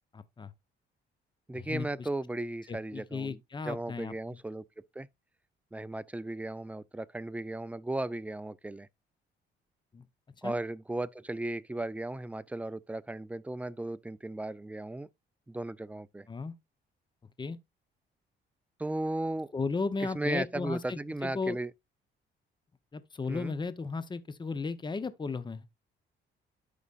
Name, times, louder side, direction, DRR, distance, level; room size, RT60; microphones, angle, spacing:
voice 1, 0.1-0.5 1.7-2.1 2.7-4.4 9.9-10.0 10.4-10.5 16.3-16.5 17.4-17.6 19.5-21.6 22.9-25.6, left 4 dB, 25° left, 0.8 m, -35 dB
voice 2, 1.5-3.4 3.6-5.1 5.7-8.9 10.4-15.1 15.5-16.3 18.8-19.5 20.1-21.7 23.3-23.5, right 2 dB, 5° right, 0.4 m, -36 dB
12.5 x 5.0 x 2.4 m
cardioid pair, 90°, 20 cm